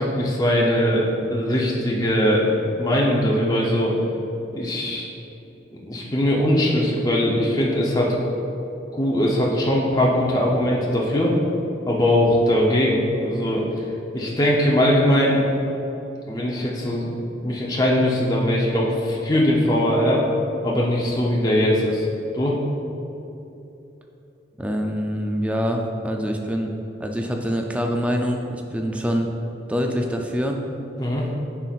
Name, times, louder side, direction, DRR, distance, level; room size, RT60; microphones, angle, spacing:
voice 1, 0.0-3.9 4.5-5.1 5.8-8.1 9.0-11.4 11.9-13.6 14.1-15.4 16.3-17.1 17.4-20.2 20.6-22.1 22.3-22.6 31.0-31.2, left 1 dB, 20° left, -4 dB, 0.8 m, -20 dB
voice 2, 24.6-26.7 27.0-29.3 29.7-30.6, equal, 5° right, 2 dB, 0.4 m, -25 dB
9.2 x 5.8 x 2.5 m, 3.0 s
head